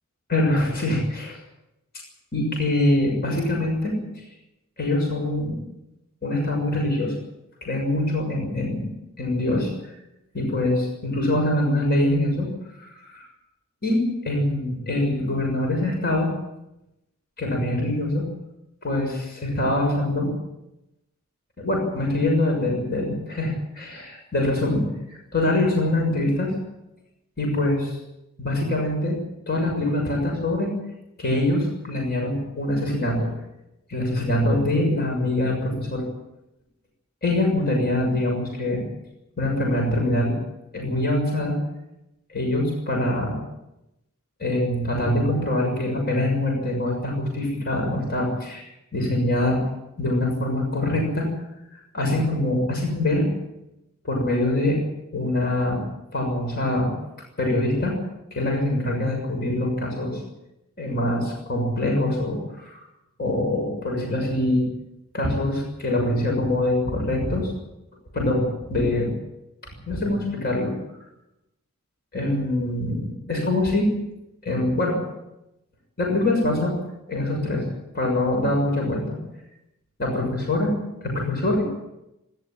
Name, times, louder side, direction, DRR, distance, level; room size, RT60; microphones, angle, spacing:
voice 1, 0.3-1.4 2.3-3.9 4.8-5.6 6.2-7.1 7.6-8.9 9.2-9.7 10.3-12.5 12.8-13.3 13.8-16.3 17.4-18.2 18.8-20.3 21.6-26.5 27.4-28.0 28.4-29.2 29.5-30.7 31.2-33.3 33.9-36.0 37.2-38.8 39.4-40.4 40.7-41.6 42.3-43.4 44.4-49.6 50.0-51.3 51.7-53.3 54.0-54.8 55.1-55.8 56.1-56.9 57.4-57.9 58.3-60.2 60.8-62.9 63.2-64.6 65.1-67.5 68.1-69.1 69.9-70.7 72.1-73.8 74.4-75.0 76.0-76.7 77.1-77.7 77.9-79.2 80.0-80.7 81.0-81.7, left 1 dB, 45° left, 1 dB, 6.6 m, -24 dB
26.5 x 12.5 x 9.0 m, 0.91 s
head